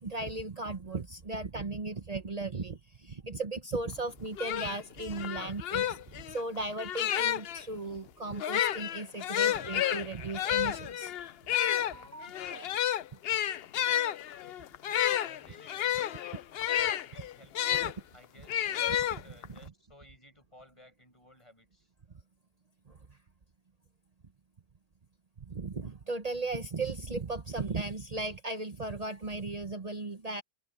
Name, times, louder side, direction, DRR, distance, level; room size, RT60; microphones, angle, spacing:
voice 1, 0.0-11.1 11.7-12.7 17.8-17.9 18.9-19.2 22.9-23.2 25.4-30.4, right 3 dB, 40° right, 1.1 m, -37 dB
sound 1, 4.0-4.1 4.4-7.6 8.3-17.9 18.5-19.6, left 11 dB, 75° left, 0.8 m, -31 dB
voice 2, 15.2-16.1 17.0-17.8 18.1-18.7 19.0-21.9, left 1 dB, 30° left, 7.1 m, -58 dB
omnidirectional pair, 1.1 m